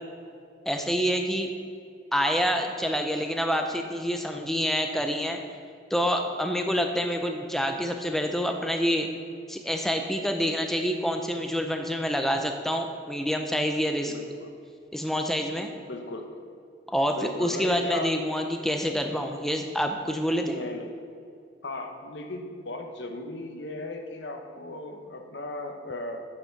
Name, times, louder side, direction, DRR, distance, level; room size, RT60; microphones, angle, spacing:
voice 1, 0.7-1.5 2.1-5.4 5.9-9.1 9.5-14.1 14.9-15.7 16.9-20.6, equal, ahead, 4 dB, 0.5 m, -27 dB
voice 2, 14.0-14.5 15.9-16.3 17.1-18.1 20.4-20.9 21.6-26.3, left 2 dB, 70° left, 5 dB, 1.0 m, -36 dB
8.4 x 6.9 x 5.8 m, 2.4 s
head